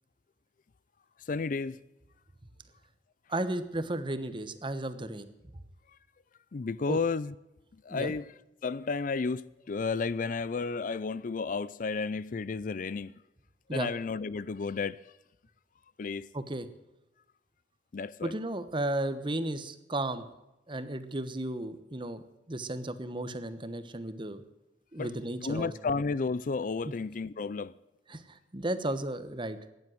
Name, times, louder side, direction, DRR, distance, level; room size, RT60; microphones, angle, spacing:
voice 1, 1.3-1.8 6.5-7.3 7.8-8.3 8.6-13.1 13.7-15.0 16.0-16.3 17.9-18.3 25.0-25.1 25.4-27.7, left 4 dB, 50° left, 0.4 m, -32 dB
voice 2, 3.3-5.3 6.9-7.0 7.9-8.1 13.7-13.9 16.3-16.7 18.2-20.2 20.7-22.2 22.5-24.4 24.9-25.7 28.1-29.6, right 1 dB, 30° right, 1.1 m, -34 dB
15.0 x 10.5 x 7.9 m
head